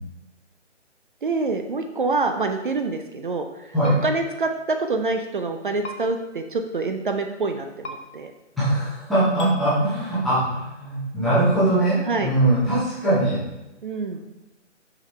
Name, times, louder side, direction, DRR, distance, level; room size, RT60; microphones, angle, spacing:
voice 1, 1.2-3.7 4.0-8.3 12.1-12.3 13.8-14.2, right 3 dB, 45° right, 5 dB, 0.5 m, -26 dB
sound 1, 3.8-4.0 5.8-6.0 7.8-8.0 9.4-9.5, left 1 dB, 65° left, 1.2 m, -34 dB
voice 2, 8.5-13.4, right 1 dB, ahead, -15 dB, 0.7 m, -21 dB
5.9 x 5.9 x 3.3 m, 1.0 s
hypercardioid pair, 155°, 37 cm